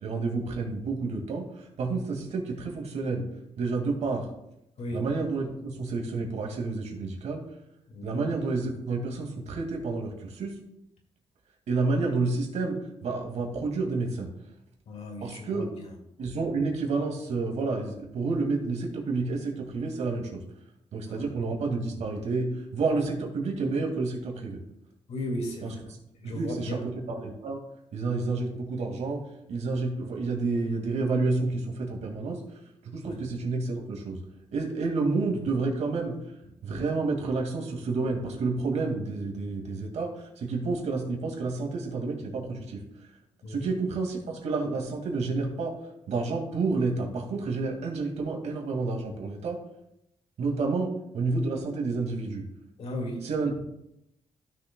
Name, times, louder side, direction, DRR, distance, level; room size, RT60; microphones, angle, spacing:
voice 1, 0.0-1.4 1.8-3.2 3.6-4.3 4.9-7.4 8.0-10.6 11.7-14.3 15.2-15.7 16.2-20.4 20.9-24.6 25.6-25.7 26.2-27.6 27.9-29.2 29.5-32.4 32.8-34.2 34.5-36.2 36.6-42.8 43.5-45.7 46.1-49.6 50.4-52.4 53.2-53.6, right 3 dB, 70° right, 1 dB, 2.1 m, -29 dB
voice 2, 7.9-8.3 14.9-15.7 21.1-21.3 25.1-25.8 26.2-26.9 33.1-33.2 43.4-43.8 52.8-53.2, left 1 dB, 65° left, 2 dB, 2.1 m, -35 dB
15.5 x 6.5 x 2.2 m, 0.82 s
cardioid pair, 130°, 12 cm